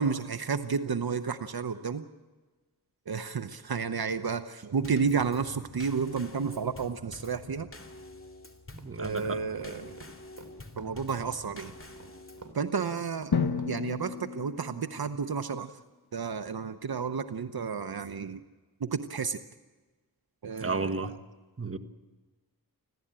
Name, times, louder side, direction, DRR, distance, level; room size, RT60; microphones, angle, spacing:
voice 1, 0.0-2.0 3.1-7.7 9.0-10.0 10.8-11.7 12.5-13.4 13.6-15.7 16.1-18.4 18.8-19.4 20.4-21.2, right 5 dB, 70° right, 0.9 m, -31 dB
Drum kit / Snare drum / Bass drum, 4.8-12.5, left 2 dB, 35° left, 2.4 m, -47 dB
voice 2, 8.7-9.4 20.6-21.1 21.6-21.8, right 3 dB, 35° right, 1.4 m, -32 dB
sound 1, 8.8-14.2, right 3 dB, 50° right, 3.3 m, -50 dB
Drum, 13.3-15.2, left 6 dB, 80° left, 1.3 m, -32 dB
26.0 x 16.0 x 8.9 m
wide cardioid pair, 60°, 38 cm